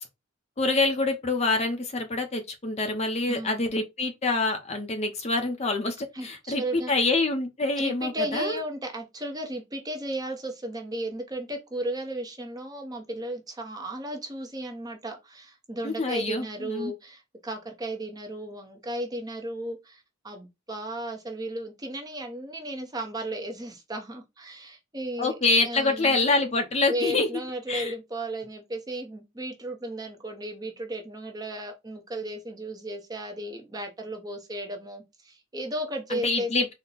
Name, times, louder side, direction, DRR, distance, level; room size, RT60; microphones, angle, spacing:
voice 1, 0.6-8.6 15.8-16.9 25.2-27.3 27.7-27.9 36.1-36.7, left 3 dB, 30° left, 0.7 m, -26 dB
voice 2, 3.3-3.6 6.1-6.9 7.8-25.3 25.6-26.3 26.9-36.5, right 1 dB, 20° right, 0.7 m, -35 dB
4.2 x 2.1 x 3.9 m
head